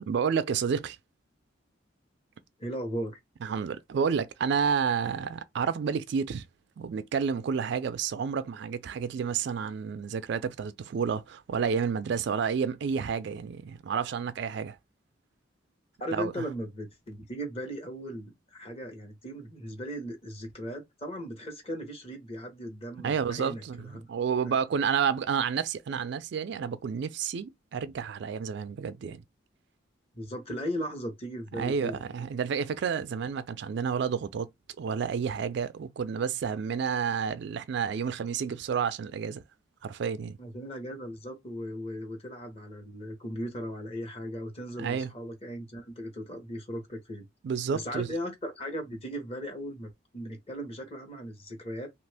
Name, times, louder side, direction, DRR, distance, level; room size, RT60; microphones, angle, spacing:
voice 1, 0.1-1.0 3.4-6.4 6.8-14.8 16.1-16.4 23.0-29.2 31.6-34.5 34.8-39.4 39.8-40.4 44.8-45.1 47.4-48.1, right 6 dB, 60° right, 0.3 m, -30 dB
voice 2, 2.6-3.2 16.0-24.1 24.4-24.6 30.1-32.3 40.4-47.3 47.7-51.9, equal, 30° left, 1.0 m, -37 dB
2.8 x 2.5 x 3.3 m
head